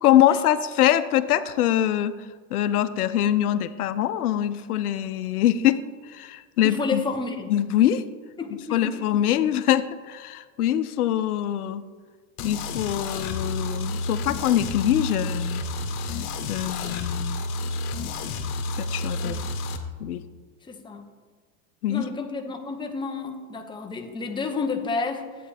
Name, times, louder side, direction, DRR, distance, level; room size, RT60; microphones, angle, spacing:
voice 1, 0.0-2.1 2.5-5.8 6.1-7.0 7.5-8.0 8.7-11.8 12.4-15.6 16.0-17.4 18.8-19.4 20.0-20.2 21.8-22.0, left 12 dB, 85° left, 12 dB, 0.7 m, -23 dB
voice 2, 6.6-7.5 8.4-9.0 19.2-19.4 20.7-21.0 21.9-25.3, left 4 dB, 10° left, 3 dB, 0.8 m, -30 dB
sound 1, 12.4-19.8, left 2 dB, 65° left, 1.3 m, -30 dB
11.0 x 8.6 x 3.4 m, 1.4 s
hypercardioid pair, 110°, 44 cm